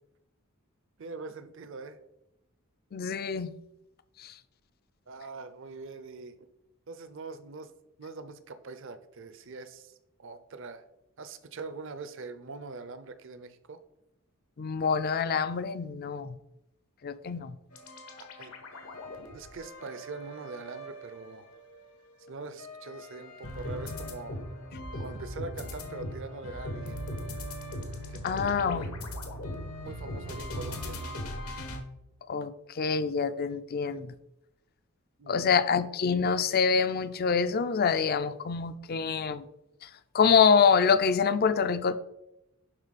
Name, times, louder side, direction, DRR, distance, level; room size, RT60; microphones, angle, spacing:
voice 1, 1.0-2.0 5.1-6.4 6.9-7.7 8.0-10.8 11.2-13.8 18.2-18.5 19.3-21.5 22.3-24.4 25.0-27.1 28.1-28.9 29.8-31.2 35.2-35.7, right 3 dB, 60° right, 11 dB, 0.6 m, -43 dB
voice 2, 2.9-3.5 4.2-4.3 14.6-16.3 17.0-17.5 28.2-28.8 32.3-34.1 35.3-39.4 39.8-39.9 40.1-42.0, left 6 dB, 45° left, 13 dB, 0.4 m, -26 dB
sound 1, 17.7-21.8 22.2-31.8, left 1 dB, 80° left, 1.4 m, -39 dB
11.0 x 3.9 x 4.1 m, 0.88 s
head